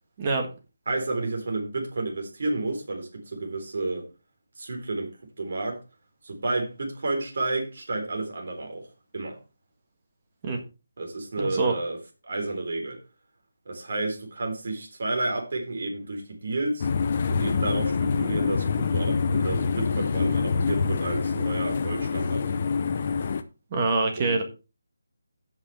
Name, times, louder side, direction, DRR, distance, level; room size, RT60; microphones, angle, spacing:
voice 1, 0.9-4.1 4.6-5.8 6.2-8.9 9.1-9.4 11.0-12.0 12.2-13.0 13.7-16.9 17.3-22.5 24.2-24.4, right 2 dB, 50° right, 4.0 m, -31 dB
voice 2, 11.4-11.7 23.7-24.4, right 3 dB, 25° right, 1.6 m, -25 dB
sound 1, 16.8-23.4, left 5 dB, 30° left, 0.8 m, -26 dB
17.5 x 6.0 x 3.4 m
hypercardioid pair, 175°, 0 cm